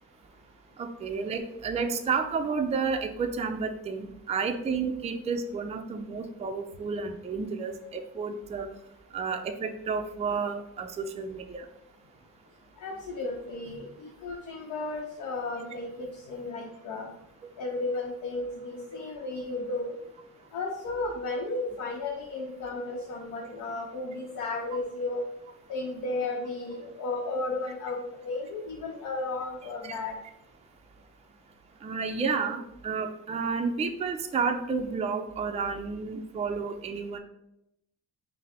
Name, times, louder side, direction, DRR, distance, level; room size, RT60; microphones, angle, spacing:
voice 1, 0.8-8.7 9.1-11.7 29.8-30.0 31.8-37.2, right 5 dB, 20° right, 4 dB, 0.4 m, -31 dB
voice 2, 12.8-17.1 17.6-19.9 20.5-25.2 25.7-30.1, left 3 dB, 85° left, -2 dB, 0.7 m, -34 dB
5.4 x 2.0 x 3.4 m, 0.83 s
cardioid pair, 90°, 30 cm